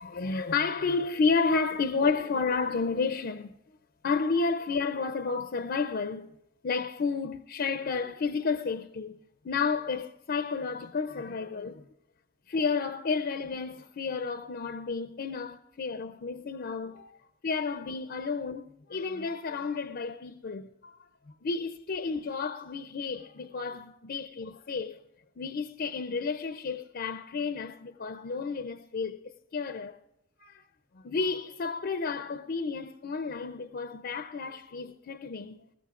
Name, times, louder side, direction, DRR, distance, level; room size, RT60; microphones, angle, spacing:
voice 1, 0.0-3.6 4.0-6.3 6.6-9.2 9.4-11.8 12.5-17.1 17.4-21.0 21.4-25.0 25.4-29.2 29.5-30.0 30.4-30.6 31.0-35.6, left 4 dB, 50° left, 0.5 m, -31 dB
20.0 x 15.0 x 2.4 m
head